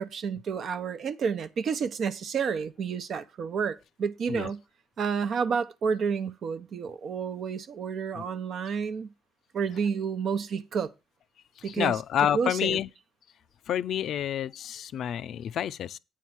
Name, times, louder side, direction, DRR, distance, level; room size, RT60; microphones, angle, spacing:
voice 1, 0.0-4.6 5.0-9.1 9.5-10.9 11.6-12.0 12.3-12.8, right 6 dB, 60° right, 0.8 m, -30 dB
voice 2, 11.7-12.9 13.7-16.0, left 10 dB, 70° left, 0.4 m, -29 dB
8.8 x 4.7 x 7.2 m
cardioid pair, 90°, 0 cm